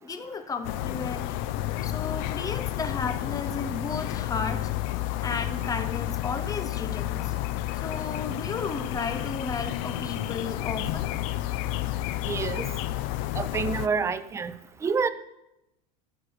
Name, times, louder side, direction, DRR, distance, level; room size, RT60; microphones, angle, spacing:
voice 1, 0.0-1.3 1.8-4.7 5.2-7.3 7.7-11.1, left 4 dB, 20° left, 10 dB, 0.8 m, -34 dB
sound 1, 0.6-13.9, left 14 dB, 65° left, 0.5 m, -31 dB
voice 2, 12.3-12.6 13.4-14.5 14.8-15.1, right 5 dB, 15° right, 12 dB, 0.4 m, -27 dB
13.5 x 4.8 x 6.4 m, 0.90 s
supercardioid pair, 140°, 19 cm